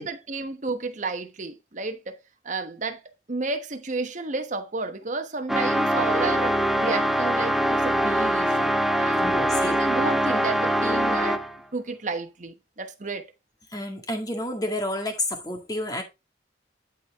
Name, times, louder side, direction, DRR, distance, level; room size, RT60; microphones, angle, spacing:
voice 1, 0.0-2.2 2.4-3.0 3.3-11.4 11.7-13.3, right 3 dB, 45° right, 1.1 m, -32 dB
sound 1, 5.5-11.6, equal, ahead, 0.6 m, -23 dB
voice 2, 9.2-9.8 13.7-16.0, left 1 dB, 20° left, 1.9 m, -30 dB
11.5 x 4.5 x 3.6 m
head